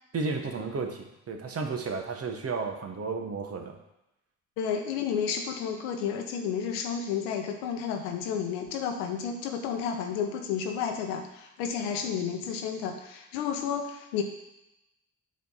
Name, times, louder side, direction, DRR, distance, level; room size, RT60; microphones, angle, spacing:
voice 1, 0.1-3.8, right 4 dB, 40° right, 4 dB, 1.2 m, -33 dB
voice 2, 4.6-14.2, left 7 dB, 75° left, 4 dB, 0.9 m, -31 dB
8.3 x 3.2 x 5.5 m, 0.91 s
hypercardioid pair, 45°, 36 cm